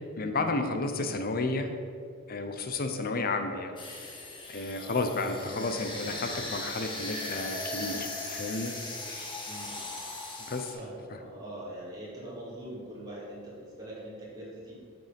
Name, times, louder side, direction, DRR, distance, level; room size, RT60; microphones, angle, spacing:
voice 1, 0.2-1.7 2.3-3.8 4.5-8.7 9.1-9.3 10.5-10.7 11.1-11.2, left 3 dB, 45° left, 6 dB, 0.7 m, -32 dB
sound 1, 3.8-10.7, left 2 dB, 25° left, 1.3 m, -38 dB
voice 2, 4.7-5.6 9.5-9.8 10.7-14.7, right 1 dB, 20° right, -7 dB, 2.1 m, -43 dB
7.8 x 5.2 x 5.2 m, 2.2 s
head